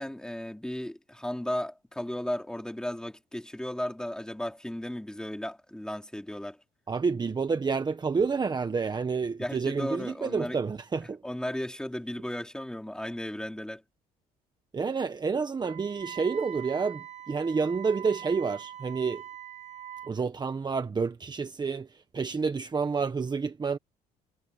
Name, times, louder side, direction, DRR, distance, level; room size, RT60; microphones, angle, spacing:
voice 1, 0.0-6.6 9.4-10.6 11.2-13.8, left 1 dB, 5° left, 3.4 m, -35 dB
voice 2, 6.9-11.2 14.7-19.2 20.1-21.9 22.1-23.8, right 5 dB, 25° right, 1.3 m, -29 dB
Wind instrument woodwind instrument, 15.6-20.2, right 10 dB, 40° right, 1.8 m, -43 dB
cardioid pair, 110°, 17 cm